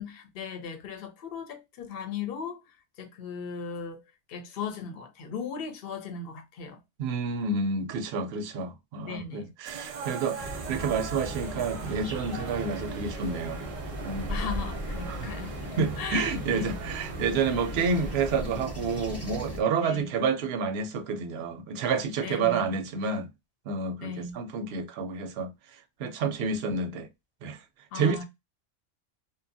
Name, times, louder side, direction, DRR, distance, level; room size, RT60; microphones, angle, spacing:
voice 1, 0.0-4.0 4.3-6.8 9.0-9.5 14.3-16.8 19.8-20.1 22.2-22.6 24.0-24.4 27.9-28.2, left 6 dB, 55° left, 0.8 m, -37 dB
voice 2, 7.0-13.6 14.0-14.3 15.1-15.3 15.8-23.3 23.7-25.5 26.0-27.1 27.4-27.6 27.9-28.2, right 4 dB, 65° right, 0.7 m, -29 dB
sound 1, 9.6-18.4, right 6 dB, 90° right, 1.0 m, -42 dB
sound 2, 10.4-19.6, equal, 15° left, 0.7 m, -37 dB
2.7 x 2.2 x 2.6 m
omnidirectional pair, 1.3 m